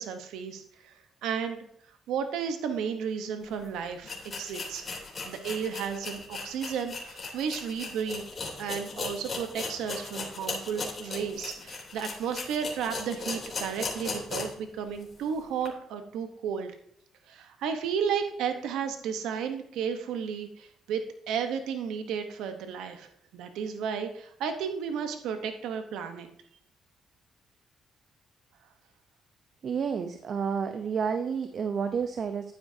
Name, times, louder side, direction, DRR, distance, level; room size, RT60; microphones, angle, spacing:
voice 1, 0.0-1.6 2.1-4.9 5.2-8.2 8.6-16.7 17.3-21.0 21.3-26.3, right 7 dB, 90° right, 7 dB, 1.1 m, -33 dB
sound 1, 3.5-3.6 4.0-14.7 15.0-15.1 15.6-15.7, left 3 dB, 40° left, 3.3 m, -37 dB
voice 2, 29.6-32.5, right 6 dB, 55° right, 7 dB, 0.8 m, -30 dB
11.0 x 9.7 x 2.8 m, 0.68 s
cardioid pair, 90°, 0 cm